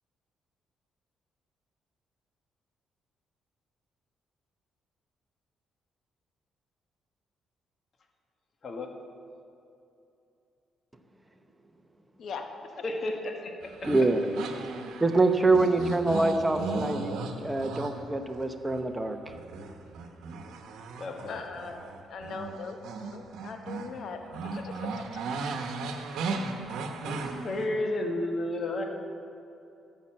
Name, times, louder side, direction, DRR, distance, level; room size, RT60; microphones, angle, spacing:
voice 1, 8.6-8.9 12.8-13.5 13.8-13.9 21.0-21.4 27.0-28.8, left 1 dB, 50° left, 2 dB, 1.6 m, -32 dB
sound 1, 13.6-18.9 19.2-24.0 24.3-27.7, right 4 dB, 80° right, 1.0 m, -36 dB
voice 2, 13.9-14.2 15.0-17.1 17.4-19.2, right 2 dB, 15° right, 6 dB, 0.9 m, -25 dB
voice 3, 21.2-24.2 24.5-24.9, left 5 dB, 65° left, 5 dB, 1.0 m, -40 dB
13.5 x 5.5 x 7.5 m, 2.7 s
cardioid pair, 90°, 0 cm